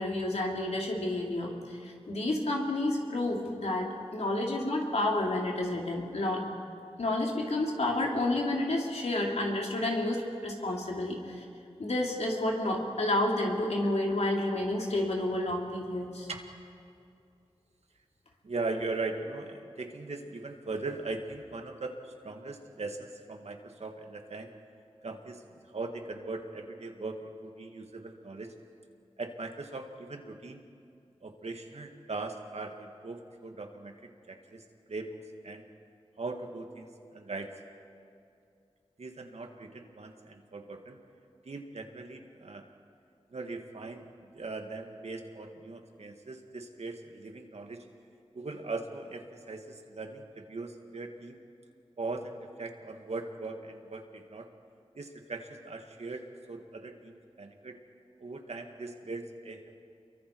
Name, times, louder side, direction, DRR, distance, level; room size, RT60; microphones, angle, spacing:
voice 1, 0.0-6.4 7.0-11.4 11.8-16.3, left 1 dB, 80° left, -1 dB, 3.2 m, -30 dB
voice 2, 18.4-24.5 25.0-28.5 29.2-30.6 31.2-35.2 35.4-35.7 36.2-37.5 39.0-41.0 41.4-42.7 43.3-47.9 48.3-51.4 52.0-54.5 55.0-57.8 58.2-59.7, right 3 dB, 75° right, 4 dB, 1.9 m, -40 dB
29.0 x 23.0 x 4.7 m, 2.5 s
wide cardioid pair, 55°, 11 cm